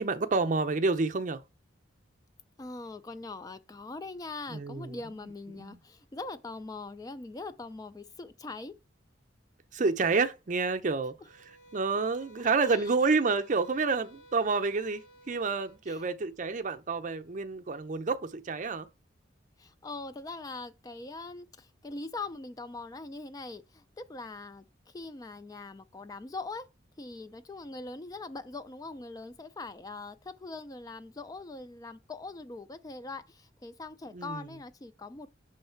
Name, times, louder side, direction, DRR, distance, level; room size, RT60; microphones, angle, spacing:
voice 1, 0.0-1.4 4.5-5.0 5.6-5.8 9.7-11.1 11.7-18.9 34.1-34.5, right 4 dB, 45° right, 0.6 m, -29 dB
voice 2, 2.6-8.8 12.7-12.9 15.9-16.1 19.6-26.7 27.0-35.3, left 3 dB, 20° left, 0.3 m, -42 dB
sound 1, 11.2-15.8, right 1 dB, 70° left, 0.9 m, -55 dB
6.2 x 3.2 x 5.7 m
head